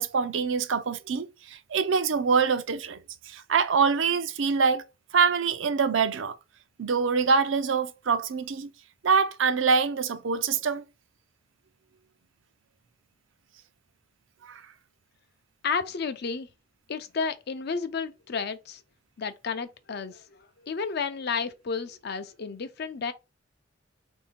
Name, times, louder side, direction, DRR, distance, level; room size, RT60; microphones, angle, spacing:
voice 1, 0.0-3.0 3.3-4.8 5.1-6.4 6.8-8.7 9.0-10.8 14.4-14.6, right 5 dB, 75° right, 0.5 m, -25 dB
voice 2, 15.6-16.5 16.9-18.8 19.2-23.1, left 5 dB, 55° left, 0.5 m, -32 dB
3.6 x 2.7 x 4.2 m
head